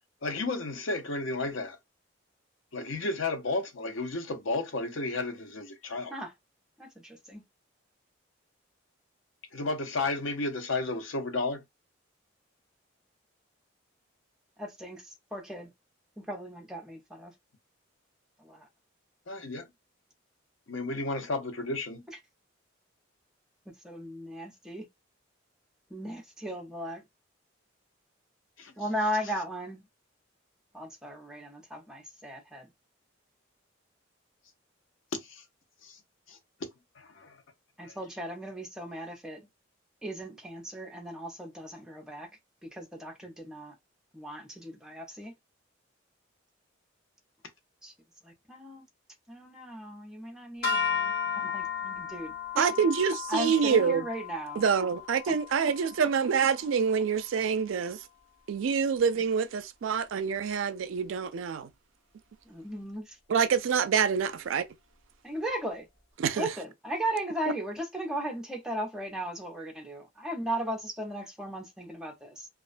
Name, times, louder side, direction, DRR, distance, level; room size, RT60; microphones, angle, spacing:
voice 1, 0.2-1.8 2.7-6.1 9.5-11.6 19.3-19.6 20.7-22.0 28.6-28.7 35.1-35.4 35.8-36.0 36.3-36.4 37.0-37.4 37.8-37.9, left 3 dB, 75° left, 0.6 m, -32 dB
voice 2, 6.8-7.4 14.6-15.0 15.3-15.7 16.2-17.3 18.4-18.7 23.8-24.9 25.9-27.0 28.8-29.8 30.7-32.7 37.8-39.5 40.0-42.3 42.7-43.7 44.1-45.3 47.8-47.9 48.2-48.8 49.3-52.7 53.3-54.6 55.3-55.4 62.5-63.2 65.2-65.9 66.4-72.5, right 1 dB, 5° right, 0.6 m, -37 dB
sound 1, 50.6-57.0, left 6 dB, 50° left, 1.0 m, -35 dB
voice 3, 52.6-54.1 54.6-58.0 58.5-61.7 63.3-64.7 66.2-66.5, right 6 dB, 75° right, 0.4 m, -26 dB
2.4 x 2.1 x 2.4 m
head